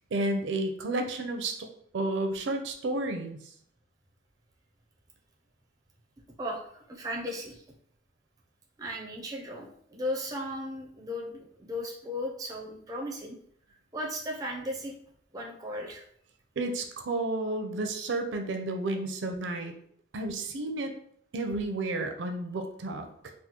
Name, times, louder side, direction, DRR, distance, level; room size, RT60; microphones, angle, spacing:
voice 1, 0.1-1.7 1.9-3.4 16.6-19.7 20.1-20.9 21.3-23.3, right 2 dB, 75° right, 5 dB, 0.5 m, -31 dB
voice 2, 6.4-7.6 8.8-13.4 13.7-14.9 15.3-16.0, equal, 20° right, 0 dB, 0.4 m, -36 dB
3.5 x 2.2 x 2.8 m, 0.64 s
head